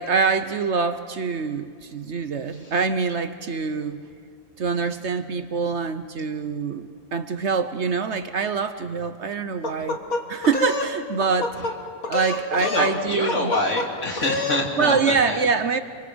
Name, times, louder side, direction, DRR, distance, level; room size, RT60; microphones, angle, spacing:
voice 1, 0.0-4.0 4.6-10.0 10.3-11.6 12.1-13.5 14.8-15.8, right 5 dB, 55° right, 10 dB, 1.1 m, -25 dB
sound 1, 9.6-10.9 11.2-11.7 12.0-13.0 13.3-13.9 14.2-14.6, left 2 dB, 75° left, 2.3 m, -26 dB
voice 2, 12.1-15.5, left 2 dB, 55° left, 1 dB, 3.1 m, -27 dB
28.5 x 24.5 x 7.9 m, 2.2 s
omnidirectional pair, 1.5 m